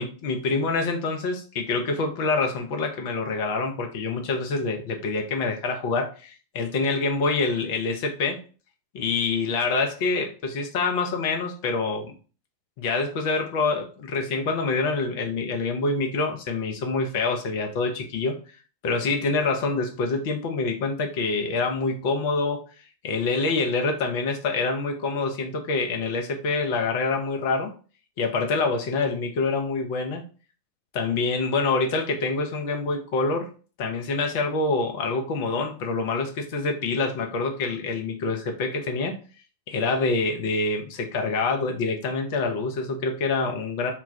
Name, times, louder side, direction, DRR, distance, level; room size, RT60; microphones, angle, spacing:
voice 1, 0.0-8.4 8.9-12.1 12.8-18.4 18.8-22.6 23.0-27.7 28.2-30.2 30.9-33.5 33.8-39.2 39.7-43.9, left 3 dB, 50° left, 3 dB, 0.7 m, -26 dB
2.4 x 2.3 x 3.2 m, 0.37 s
figure-of-eight pair, 90°, 0 cm